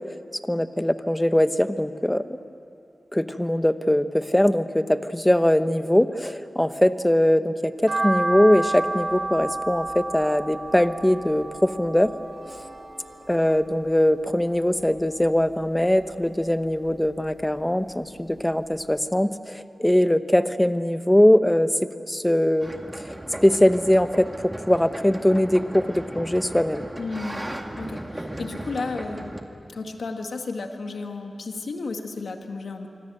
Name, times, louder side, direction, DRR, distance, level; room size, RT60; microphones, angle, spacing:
voice 1, 0.5-2.2 3.1-12.1 13.3-21.7 22.1-22.7 23.0-23.1 23.4-26.8, left 1 dB, 10° left, 10 dB, 0.9 m, -21 dB
sound 1, 7.9-14.2 14.5-15.7 16.0-17.5 17.8-17.9 18.4-18.5 18.7-18.8, right 2 dB, 55° right, 5.8 m, -31 dB
sound 2, 11.8-14.6, right 1 dB, 80° right, 6.3 m, -51 dB
sound 3, 22.6-29.4, right 1 dB, 15° right, 1.9 m, -36 dB
voice 2, 27.0-27.4 27.8-29.4 29.7-32.9, left 3 dB, 85° left, 4 dB, 1.8 m, -33 dB
25.5 x 25.0 x 7.8 m, 2.6 s
wide cardioid pair, 100°, 0 cm